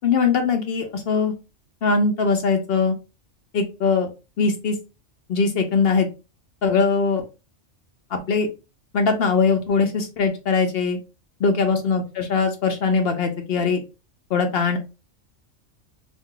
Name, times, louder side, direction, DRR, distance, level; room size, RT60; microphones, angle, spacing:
voice 1, 0.0-1.3 1.8-2.9 3.5-4.1 4.4-4.8 5.3-6.1 6.6-7.2 8.1-8.5 8.9-11.0 11.4-13.8 14.3-14.8, left 4 dB, 60° left, 6 dB, 0.7 m, -21 dB
2.6 x 2.2 x 3.6 m, 0.29 s
omnidirectional pair, 1.3 m